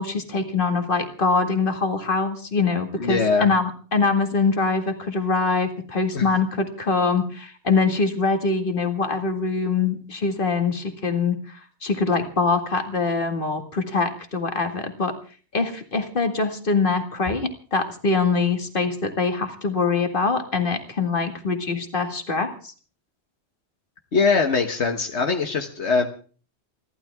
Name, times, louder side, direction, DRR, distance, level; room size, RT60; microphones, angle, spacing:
voice 1, 0.0-15.1 15.5-22.7, left 4 dB, 50° left, 6 dB, 2.2 m, -23 dB
voice 2, 3.0-3.5 6.1-6.3 24.1-26.1, left 4 dB, 80° left, 5 dB, 1.6 m, -22 dB
28.5 x 12.0 x 3.6 m, 0.40 s
omnidirectional pair, 1.1 m